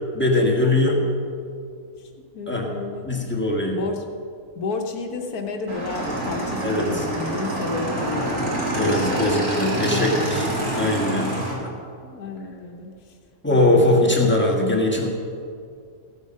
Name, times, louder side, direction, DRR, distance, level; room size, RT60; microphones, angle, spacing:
voice 1, 0.1-1.0 2.5-2.7 3.1-3.8 6.6-7.0 8.7-10.5 10.7-11.6 13.4-15.1, left 1 dB, 10° left, -2 dB, 1.6 m, -21 dB
voice 2, 2.0-3.1 3.7-4.1 4.5-10.6 11.7-13.2 13.5-14.4, left 3 dB, 80° left, 3 dB, 1.5 m, -32 dB
Motorcycle / Engine, 5.7-11.5, right 1 dB, 50° right, 3.2 m, -26 dB
15.0 x 8.4 x 5.4 m, 2.4 s
omnidirectional pair, 1.6 m